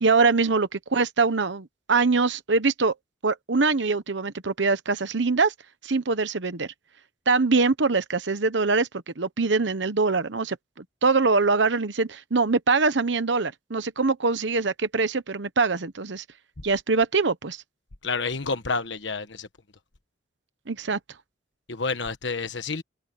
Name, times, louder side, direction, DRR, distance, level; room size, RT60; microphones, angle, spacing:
voice 1, 0.0-2.9 3.2-5.5 5.8-6.7 7.3-8.9 9.2-10.6 11.0-16.2 16.6-17.6 20.7-21.0, right 4 dB, 75° right, 1.0 m, -23 dB
voice 2, 18.0-19.5 21.7-22.8, left 4 dB, 80° left, 1.3 m, -29 dB
open air
head